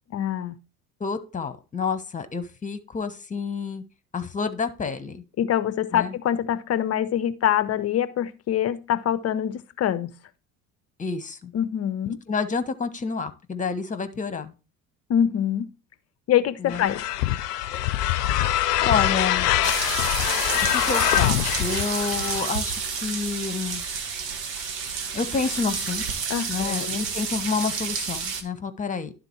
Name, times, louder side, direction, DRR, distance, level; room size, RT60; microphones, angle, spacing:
voice 1, 0.1-0.5 5.4-10.1 11.5-12.2 15.1-15.7 16.3-17.0 26.3-27.0, left 10 dB, 30° left, 0.6 m, -24 dB
voice 2, 1.0-3.8 4.1-5.2 5.9-6.1 11.0-11.5 12.3-14.5 16.6-16.8 18.8-19.5 20.7-23.8 25.1-26.2 26.5-29.1, left 5 dB, 15° left, 1.1 m, -29 dB
sound 1, 16.7-22.4, left 13 dB, 75° left, 0.6 m, -24 dB
sound 2, 19.6-28.4, right 6 dB, 75° right, 1.3 m, -30 dB
11.5 x 3.9 x 4.5 m
figure-of-eight pair, 65°, 48 cm